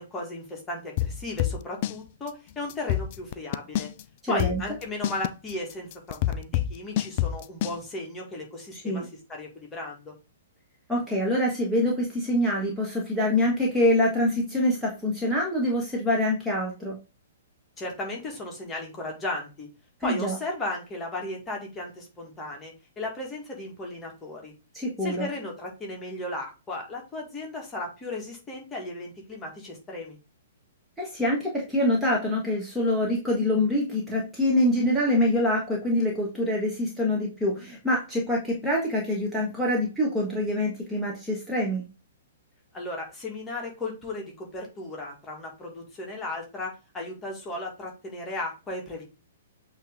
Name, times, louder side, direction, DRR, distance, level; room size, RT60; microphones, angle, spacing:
voice 1, 0.0-3.9 4.3-10.1 17.8-19.7 20.0-24.5 25.0-30.2 42.7-49.0, left 2 dB, 15° left, 0 dB, 2.0 m, -35 dB
sound 1, 1.0-2.0 2.3-2.4 2.7-4.0 4.4-7.8, left 12 dB, 40° left, 0.3 m, -26 dB
voice 2, 4.2-4.6 8.7-9.0 10.9-17.0 20.0-20.3 24.7-25.3 31.0-41.8, left 1 dB, 5° right, -4 dB, 1.6 m, -25 dB
8.0 x 3.1 x 3.7 m, 0.30 s
figure-of-eight pair, 115°, 0 cm